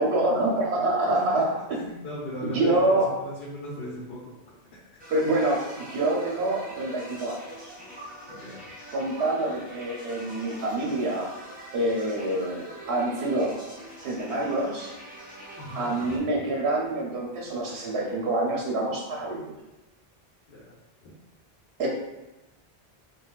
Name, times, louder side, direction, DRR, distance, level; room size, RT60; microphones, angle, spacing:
voice 1, 0.0-2.1 2.4-3.3 5.1-7.7 8.9-11.4 11.7-13.6 14.0-14.9 15.7-19.6 21.8-21.9, right 2 dB, 80° right, -2 dB, 0.9 m, -26 dB
voice 2, 1.1-1.4 1.7-4.8 8.3-8.6 15.6-16.5 20.5-20.7 21.0-21.1, equal, 80° left, -6 dB, 0.9 m, -39 dB
sound 1, 5.0-16.2, right 1 dB, 10° right, 0.6 m, -44 dB
3.8 x 2.2 x 2.3 m, 1.0 s
omnidirectional pair, 1.1 m